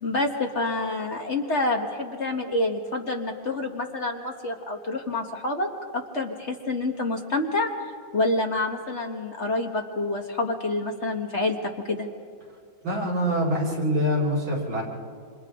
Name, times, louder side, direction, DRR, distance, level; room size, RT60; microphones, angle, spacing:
voice 1, 0.0-5.7 5.9-7.7 8.1-12.1, left 2 dB, 40° left, 3 dB, 1.5 m, -27 dB
voice 2, 12.8-14.8, equal, 85° right, -4 dB, 5.5 m, -25 dB
28.0 x 27.0 x 3.7 m, 2.2 s
omnidirectional pair, 2.1 m